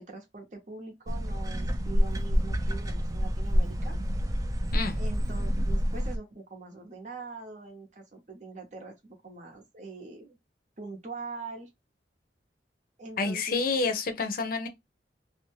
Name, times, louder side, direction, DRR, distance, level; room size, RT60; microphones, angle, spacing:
voice 1, 0.0-4.0 5.0-10.4 10.8-11.7 13.0-13.6, right 3 dB, 40° right, 0.8 m, -43 dB
sound 1, 1.1-6.2, equal, 20° right, 0.3 m, -28 dB
voice 2, 13.2-14.7, left 4 dB, 50° left, 0.6 m, -28 dB
2.6 x 2.1 x 3.1 m
head